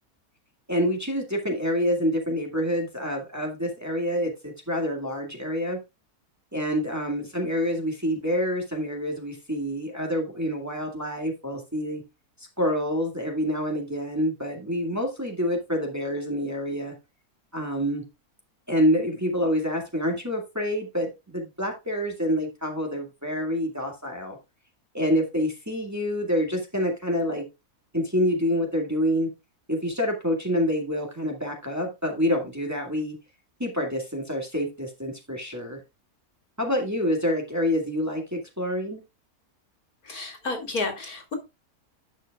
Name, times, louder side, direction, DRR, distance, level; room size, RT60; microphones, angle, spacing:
voice 1, 0.7-5.8 6.5-12.0 12.4-16.9 17.5-18.0 18.7-24.4 24.9-27.5 27.9-29.3 29.7-33.2 33.6-35.8 36.6-39.0, equal, 10° right, 1 dB, 2.0 m, -27 dB
voice 2, 40.1-41.3, left 3 dB, 75° left, 4 dB, 3.0 m, -31 dB
10.5 x 7.3 x 2.4 m, 0.24 s
omnidirectional pair, 1.6 m